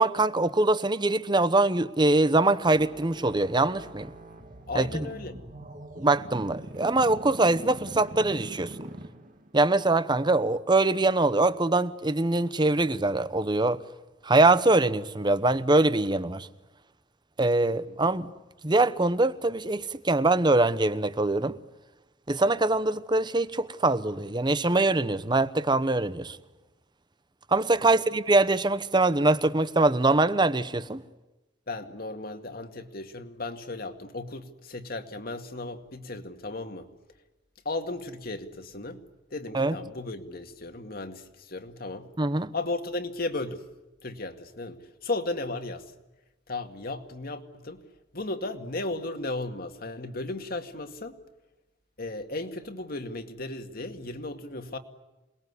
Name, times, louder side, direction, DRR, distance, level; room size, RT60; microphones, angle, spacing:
voice 1, 0.0-4.1 4.7-5.1 6.0-8.8 9.5-13.8 14.2-16.5 17.4-18.3 18.6-21.6 22.3-26.4 27.5-31.0 39.5-39.7 42.2-42.5, right 2 dB, 25° right, 1.0 m, -23 dB
sound 1, 2.6-9.6, right 1 dB, 45° right, 1.9 m, -43 dB
voice 2, 4.7-5.4 17.7-18.0 27.8-28.0 31.7-36.9 37.6-39.0 39.3-42.1 42.5-43.6 44.0-45.9 46.5-47.8 48.1-51.2 52.0-54.8, left 2 dB, 55° left, 2.2 m, -35 dB
28.0 x 20.5 x 9.7 m
head